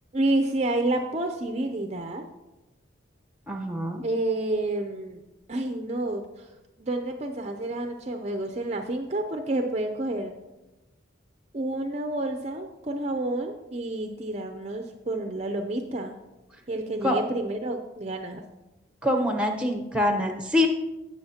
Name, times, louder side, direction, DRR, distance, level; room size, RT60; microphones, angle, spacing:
voice 1, 0.1-2.3 4.0-5.2 5.5-6.5 6.8-10.3 11.5-16.2 16.7-18.4, right 2 dB, 35° right, 5 dB, 0.5 m, -29 dB
voice 2, 3.5-4.0 17.0-17.2 19.0-20.7, left 1 dB, 5° right, 4 dB, 0.8 m, -25 dB
17.5 x 6.4 x 2.8 m, 1.0 s
head